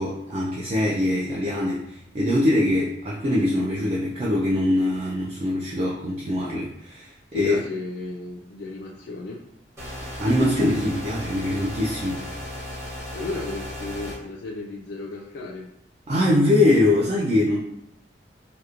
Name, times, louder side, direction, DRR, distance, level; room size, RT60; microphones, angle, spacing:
voice 1, 0.0-7.5 10.2-12.2 16.1-17.6, left 1 dB, 35° right, -5 dB, 0.4 m, -23 dB
voice 2, 7.3-9.4 13.1-15.7, left 3 dB, 65° left, -2 dB, 0.3 m, -34 dB
sound 1, 9.8-14.2, left 1 dB, 15° right, 0.9 m, -35 dB
2.9 x 2.1 x 2.4 m, 0.78 s
head